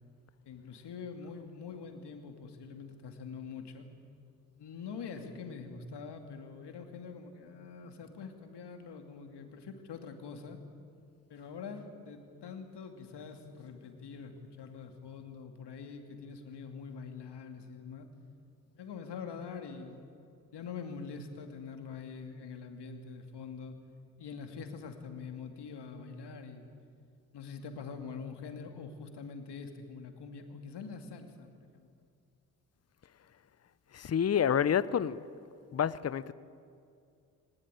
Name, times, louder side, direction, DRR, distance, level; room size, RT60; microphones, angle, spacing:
voice 1, 0.4-3.9 4.5-10.6 11.3-18.1 18.7-23.8 24.2-26.7 27.3-31.9, left 5 dB, 60° left, 5 dB, 2.6 m, -44 dB
voice 2, 33.9-35.2 35.7-36.3, left 8 dB, 35° left, 18 dB, 0.8 m, -28 dB
20.5 x 20.0 x 9.2 m, 2.4 s
hypercardioid pair, 40°, 46 cm